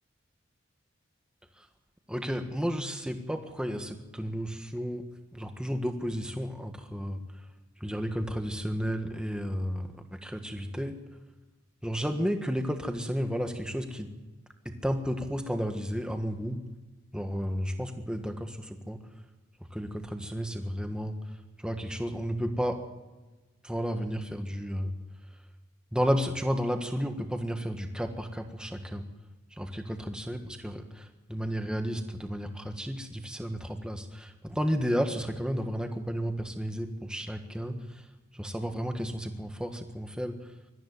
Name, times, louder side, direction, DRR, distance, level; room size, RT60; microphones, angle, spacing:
voice 1, 2.1-5.0 5.3-7.4 7.8-11.0 11.8-14.2 14.6-16.6 17.1-19.0 19.7-21.2 21.6-22.8 23.6-25.0 25.9-29.1 29.5-38.1 38.3-40.4, equal, 5° right, 5 dB, 1.5 m, -32 dB
22.0 x 14.0 x 9.4 m, 1.2 s
head